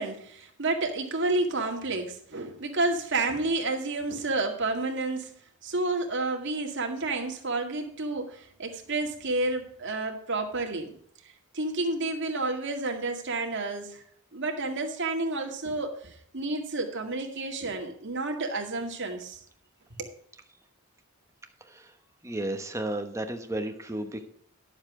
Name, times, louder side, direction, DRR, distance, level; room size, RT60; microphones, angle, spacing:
voice 1, 0.0-5.3 5.6-10.9 11.5-14.0 14.3-19.4 20.0-20.1, right 2 dB, 55° right, 3 dB, 2.0 m, -30 dB
voice 2, 22.2-24.3, right 1 dB, 15° right, 5 dB, 1.1 m, -32 dB
11.5 x 7.2 x 4.9 m, 0.63 s
head